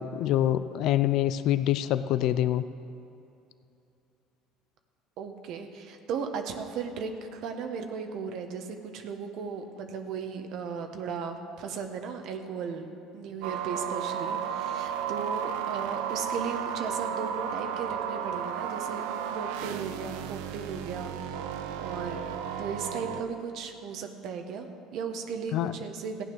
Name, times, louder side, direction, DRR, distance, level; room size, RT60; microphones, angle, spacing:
voice 1, 0.0-2.6 25.5-25.7, left 12 dB, 65° left, 13 dB, 0.4 m, -25 dB
voice 2, 5.2-12.9 13.1-19.0 19.3-21.4 21.7-22.2 22.6-26.2, right 6 dB, 65° right, 5 dB, 1.2 m, -36 dB
sound 1, 13.4-23.2, right 8 dB, 80° right, 0.7 m, -33 dB
14.5 x 9.1 x 6.1 m, 2.7 s
supercardioid pair, 90°, 0 cm